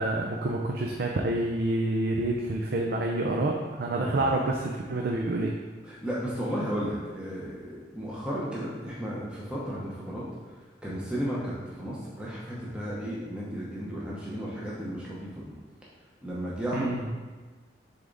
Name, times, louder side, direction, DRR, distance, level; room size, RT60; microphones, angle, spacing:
voice 1, 0.0-5.5 16.7-17.0, right 2 dB, 55° right, 0 dB, 0.5 m, -28 dB
voice 2, 5.8-10.2 10.8-15.5 16.2-17.1, equal, 5° right, -7 dB, 0.8 m, -34 dB
6.9 x 3.5 x 3.9 m, 1.4 s
head